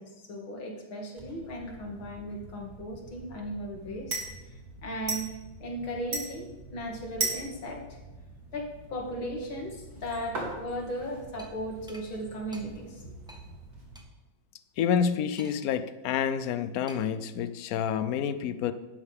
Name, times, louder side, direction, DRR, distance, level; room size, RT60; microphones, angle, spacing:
voice 1, 0.0-4.1 4.5-5.3 5.6-8.0 8.5-13.4, equal, 85° left, 0 dB, 3.0 m, -37 dB
sound 1, 1.2-14.0, right 2 dB, 50° right, 3.3 m, -40 dB
sound 2, 11.4-11.5 11.9-12.1 12.5-12.7 13.3-13.4 13.9-14.1 15.4-15.8 16.9-17.2, equal, 5° right, 1.0 m, -50 dB
voice 2, 14.8-18.7, left 8 dB, 65° left, 11 dB, 0.9 m, -28 dB
17.0 x 11.5 x 3.6 m, 1.1 s
omnidirectional pair, 2.1 m